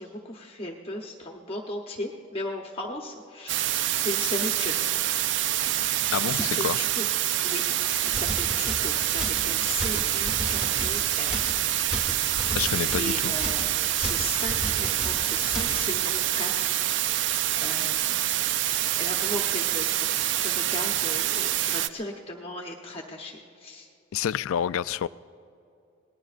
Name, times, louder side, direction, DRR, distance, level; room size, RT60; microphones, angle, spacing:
voice 1, 0.0-3.6 4.0-5.0 6.2-7.0 7.4-7.7 8.0-11.8 13.0-13.7 13.9-18.2 18.7-23.9, left 1 dB, 25° left, 1 dB, 0.9 m, -37 dB
sound 1, 3.5-21.9, right 12 dB, 55° right, 0.3 m, -26 dB
voice 2, 6.1-6.8 12.5-13.3 24.1-25.1, left 9 dB, 80° left, 16 dB, 0.3 m, -28 dB
sound 2, 7.9-15.9, left 1 dB, 5° right, 1.3 m, -36 dB
26.5 x 19.0 x 2.5 m, 2.6 s
head